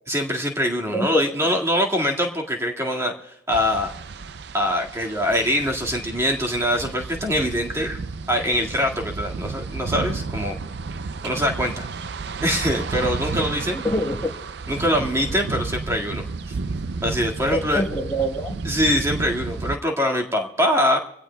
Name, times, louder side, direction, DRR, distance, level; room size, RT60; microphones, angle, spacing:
voice 1, 0.1-3.9 4.5-8.0 8.3-10.6 11.2-11.8 12.4-13.8 14.7-16.2 17.0-17.8 18.6-21.0, equal, 15° right, 1 dB, 1.8 m, -23 dB
voice 2, 0.9-1.5 13.5-14.3 15.0-15.2 17.5-18.6, equal, 15° left, -1 dB, 1.2 m, -26 dB
sound 1, 3.5-19.8, right 4 dB, 55° right, 0.5 m, -32 dB
25.0 x 16.5 x 2.3 m, 0.82 s
head